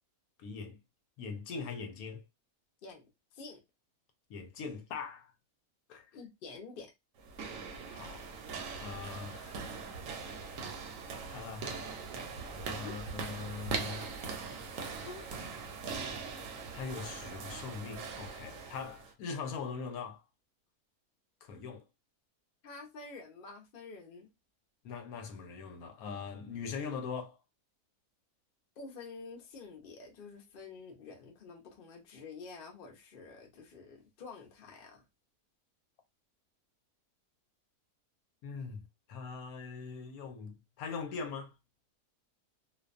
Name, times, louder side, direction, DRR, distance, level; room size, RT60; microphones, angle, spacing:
voice 1, 0.4-0.8 1.2-2.2 4.3-5.3 5.9-6.1 7.9-8.3 8.8-9.5 11.3-11.8 12.7-14.3 16.7-20.2 21.4-21.8 24.8-27.4 38.4-38.8 39.1-41.5, left 5 dB, 75° left, 1.0 m, -41 dB
voice 2, 2.8-3.6 6.1-6.9 11.3-11.5 12.8-12.9 15.0-15.3 22.6-24.3 28.8-35.0, left 4 dB, 55° left, 0.6 m, -48 dB
sound 1, 7.2-19.1, right 5 dB, 70° right, 0.9 m, -41 dB
2.5 x 2.2 x 2.3 m
omnidirectional pair, 1.6 m